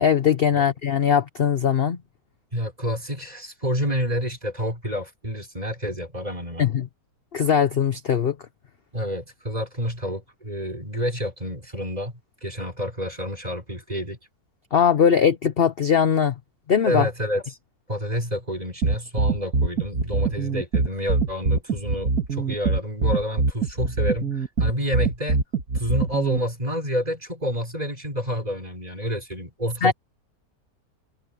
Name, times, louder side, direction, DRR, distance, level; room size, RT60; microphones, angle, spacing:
voice 1, 0.0-2.0 6.6-6.9 7.3-8.3 14.7-16.3 16.7-17.1 29.8-29.9, left 7 dB, 45° left, 0.9 m, -20 dB
voice 2, 2.5-6.7 8.9-12.1 12.4-14.2 16.9-17.6 17.9-25.4 25.7-29.9, equal, 25° right, 5.4 m, -29 dB
sound 1, 18.8-26.4, right 4 dB, 65° right, 2.4 m, -23 dB
omnidirectional pair, 1.6 m